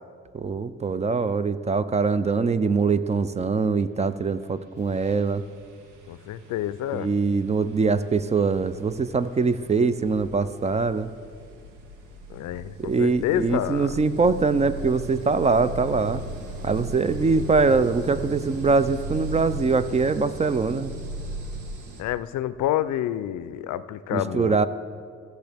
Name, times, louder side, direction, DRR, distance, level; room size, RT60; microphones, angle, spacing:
voice 1, 0.3-5.4 6.9-11.1 12.8-16.2 16.6-20.9 24.1-24.7, right 4 dB, 25° right, 13 dB, 0.3 m, -23 dB
sound 1, 4.2-4.4 4.7-22.0, right 2 dB, 90° right, 1.2 m, -38 dB
voice 2, 6.1-7.1 12.3-13.9 22.0-24.6, left 12 dB, 75° left, 15 dB, 0.5 m, -28 dB
16.0 x 6.3 x 3.4 m, 2.2 s
cardioid pair, 90°, 30 cm